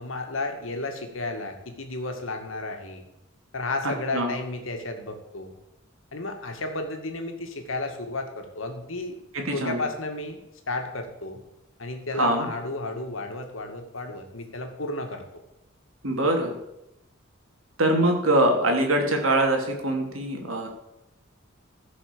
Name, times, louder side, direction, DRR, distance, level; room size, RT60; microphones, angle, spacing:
voice 1, 0.0-3.0 3.5-5.5 6.1-9.2 9.5-10.4 10.7-11.4 11.8-15.2, left 2 dB, 70° left, 4 dB, 2.2 m, -32 dB
voice 2, 3.8-4.3 9.3-9.8 12.1-12.5 16.0-16.6 17.8-20.7, right 1 dB, 90° right, 2 dB, 2.9 m, -23 dB
15.5 x 6.3 x 6.9 m, 0.88 s
head